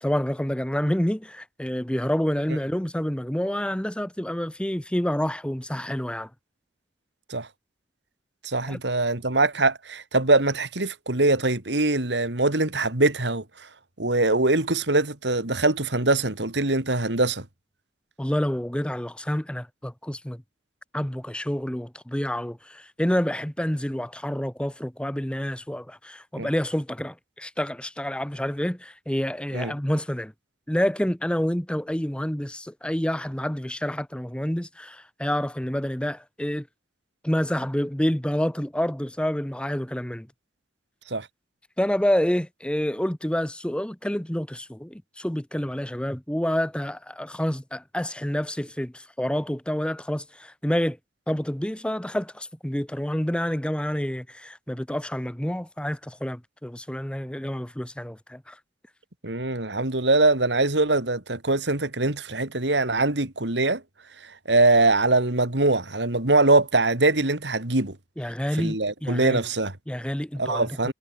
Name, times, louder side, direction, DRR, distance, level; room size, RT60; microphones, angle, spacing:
voice 1, 0.0-6.3 8.7-8.8 18.2-20.4 20.9-30.3 30.7-36.7 37.2-40.3 41.8-51.0 51.3-58.6 68.2-69.4 69.9-70.9, equal, 5° left, 0.9 m, -28 dB
voice 2, 8.4-13.4 14.0-17.4 26.4-26.5 29.5-29.7 41.1-41.3 59.2-63.8 64.5-68.0 68.6-69.7 70.4-70.9, right 2 dB, 80° right, 2.9 m, -22 dB
head